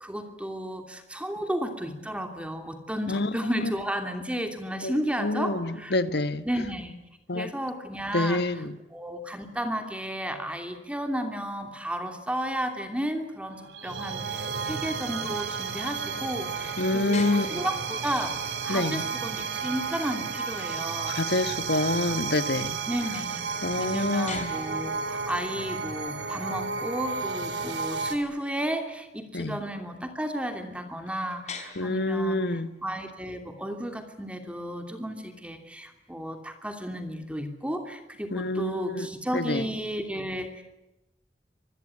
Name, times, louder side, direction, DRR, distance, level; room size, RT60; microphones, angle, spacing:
voice 1, 0.0-5.9 6.4-6.9 7.3-8.6 8.9-18.4 18.6-21.2 22.9-40.6, equal, 5° right, 2.8 m, -33 dB
voice 2, 3.1-3.7 4.8-6.4 7.3-7.5 8.1-8.8 16.8-17.7 18.7-19.1 21.1-22.8 23.6-24.5 29.3-29.6 31.8-32.8 38.3-39.1 39.3-39.6, left 2 dB, 65° left, 1.4 m, -27 dB
sound 1, 13.4-28.2, right 5 dB, 75° right, 3.6 m, -32 dB
sound 2, 16.7-36.5, left 6 dB, 40° left, 5.0 m, -49 dB
26.5 x 20.5 x 9.7 m
head